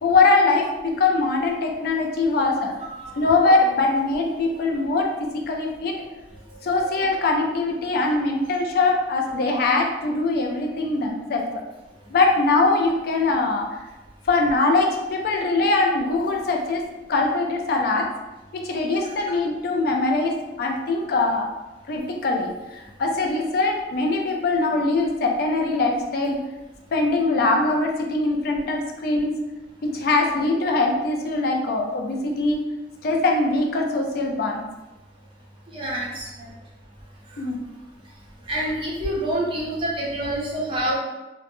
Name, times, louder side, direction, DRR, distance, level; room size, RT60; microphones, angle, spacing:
voice 1, 0.0-2.7 3.2-6.0 6.6-11.5 12.1-13.8 14.3-18.1 18.5-21.5 21.9-26.4 26.9-29.4 29.8-32.6 33.0-34.6 37.4-37.6, left 3 dB, 55° left, 2 dB, 0.3 m, -22 dB
voice 2, 35.7-36.5 38.5-40.9, right 1 dB, 30° right, -4 dB, 0.5 m, -27 dB
2.1 x 2.0 x 2.9 m, 1.1 s
head